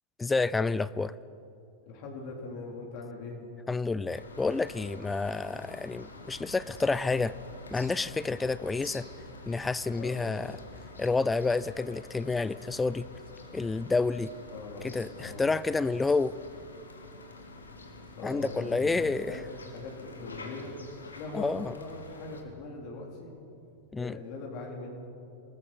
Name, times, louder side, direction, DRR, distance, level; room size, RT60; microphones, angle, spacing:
voice 1, 0.2-1.1 3.7-7.3 7.7-9.0 9.5-10.6 11.0-13.0 13.5-14.3 14.8-16.4 18.2-19.3 21.3-21.7 23.9-24.2, left 3 dB, 10° left, 18 dB, 0.5 m, -29 dB
voice 2, 1.8-3.4 10.0-10.4 14.5-15.5 18.2-19.5 19.7-20.7 21.1-23.3 23.9-24.9, left 3 dB, 45° left, 0 dB, 4.0 m, -41 dB
sound 1, 4.1-22.4, left 2 dB, 75° left, 2.7 m, -48 dB
27.5 x 19.5 x 6.4 m, 2.6 s
figure-of-eight pair, 90°, 0 cm